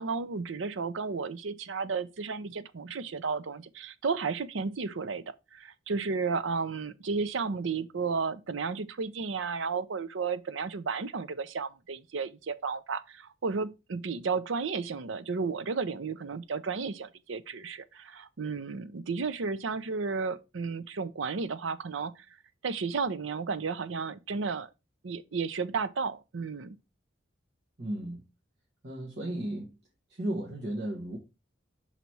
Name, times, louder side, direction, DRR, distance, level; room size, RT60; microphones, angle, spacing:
voice 1, 0.0-22.3 22.6-24.7 25.0-26.8, right 4 dB, 80° right, 0.6 m, -33 dB
voice 2, 27.8-28.2 28.8-29.7 30.1-31.2, right 1 dB, 60° right, 1.3 m, -34 dB
5.8 x 4.0 x 4.6 m
head